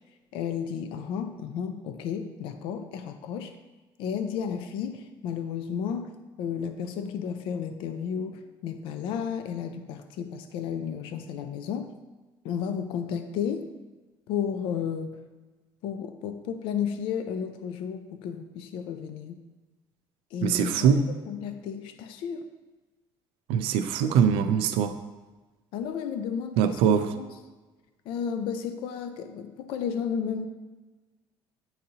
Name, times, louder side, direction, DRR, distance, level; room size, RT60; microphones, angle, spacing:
voice 1, 0.3-3.6 4.0-11.9 12.4-13.7 14.3-15.2 15.8-19.4 20.3-22.5 25.7-26.8 27.2-27.3 28.1-30.5, left 7 dB, 65° left, 8 dB, 0.5 m, -33 dB
voice 2, 20.4-21.1 23.5-25.0 26.6-27.1, right 7 dB, 85° right, 8 dB, 0.5 m, -22 dB
9.8 x 3.9 x 2.8 m, 1.2 s
cardioid pair, 175°, 9 cm